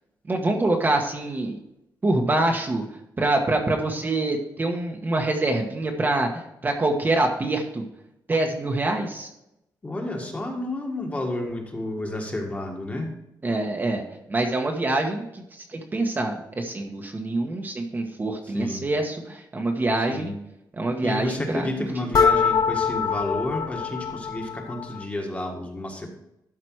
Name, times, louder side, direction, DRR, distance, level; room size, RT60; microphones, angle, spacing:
voice 1, 0.3-1.6 2.0-7.8 8.3-9.3 13.4-14.0 14.3-20.3 20.7-21.9, right 2 dB, 25° right, 2 dB, 1.2 m, -25 dB
voice 2, 9.8-13.1 18.5-18.9 20.1-20.3 21.0-26.1, left 1 dB, 20° left, 1 dB, 1.7 m, -31 dB
sound 1, 22.1-25.0, left 6 dB, 55° left, 0.7 m, -24 dB
12.5 x 5.0 x 4.7 m, 0.84 s
wide cardioid pair, 150°, 8 cm